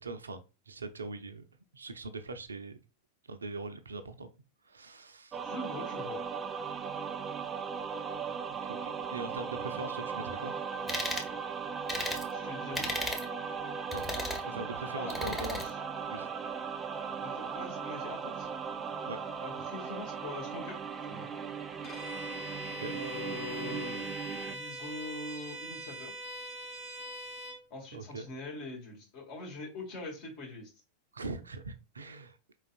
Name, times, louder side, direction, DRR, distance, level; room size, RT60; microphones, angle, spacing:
voice 1, 0.0-1.4 1.7-2.8 3.3-4.3 4.7-5.4 8.7-10.6 13.9-14.0 14.4-15.3 16.1-16.3 19.1-19.2 22.8-23.0 27.9-28.3 31.1-32.4, right 3 dB, 75° right, 0.5 m, -41 dB
sound 1, 5.3-24.6, right 6 dB, 20° right, 0.4 m, -38 dB
voice 2, 5.4-6.2 12.3-12.9 15.0-15.8 17.2-18.5 19.4-21.3 22.9-24.0 24.5-26.1 27.7-30.7, left 2 dB, 45° left, 2.0 m, -43 dB
sound 2, 10.9-11.3 11.9-12.2 12.7-13.3 13.9-14.4 15.1-15.7, equal, ahead, 1.1 m, -34 dB
Bowed string instrument, 21.8-27.6, right 1 dB, 30° left, 1.7 m, -42 dB
4.7 x 3.9 x 2.4 m
figure-of-eight pair, 90°, 0 cm